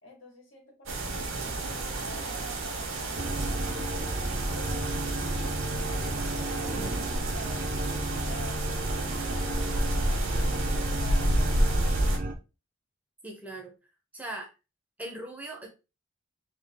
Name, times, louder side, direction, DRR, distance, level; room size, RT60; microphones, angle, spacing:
voice 1, 0.0-3.8 4.5-12.2, right 1 dB, 75° left, -1 dB, 1.9 m, -49 dB
sound 1, 0.9-12.2, right 1 dB, 80° right, 1.1 m, -31 dB
sound 2, 3.1-12.3, right 1 dB, 45° right, 0.7 m, -32 dB
voice 2, 13.2-13.7 14.1-14.5 15.0-15.7, right 1 dB, 5° right, 1 dB, 0.8 m, -39 dB
3.8 x 3.0 x 3.5 m, 0.30 s
head